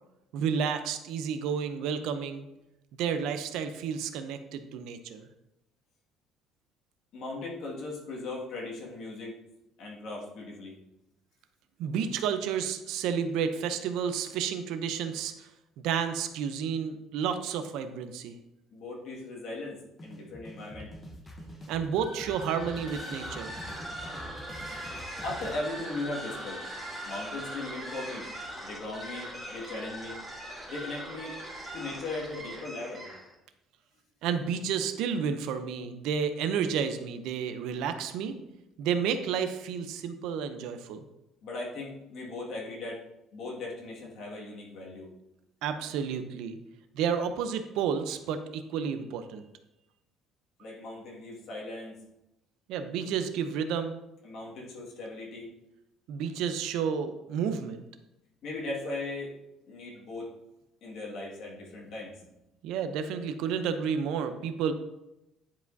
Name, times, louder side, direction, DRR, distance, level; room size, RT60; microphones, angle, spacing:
voice 1, 0.3-2.5 3.0-5.3 11.8-15.5 15.8-18.3 21.7-23.6 34.2-38.5 38.8-41.0 45.6-46.6 46.9-49.4 52.7-54.0 56.1-57.8 62.6-64.7, right 7 dB, 75° right, 9 dB, 0.6 m, -31 dB
voice 2, 7.1-9.3 9.8-10.8 18.7-20.9 25.2-26.6 27.0-28.3 28.6-30.2 30.7-31.3 31.7-33.1 41.4-43.0 43.3-45.1 50.6-52.0 54.2-55.5 58.4-59.3 59.7-60.3 60.8-62.2, left 2 dB, 55° left, -2 dB, 1.9 m, -38 dB
sound 1, 20.0-25.5, equal, 15° left, 0.8 m, -46 dB
sound 2, 22.0-33.3, equal, 5° right, 1.4 m, -40 dB
10.0 x 4.9 x 2.7 m, 0.90 s
cardioid pair, 165°, 0 cm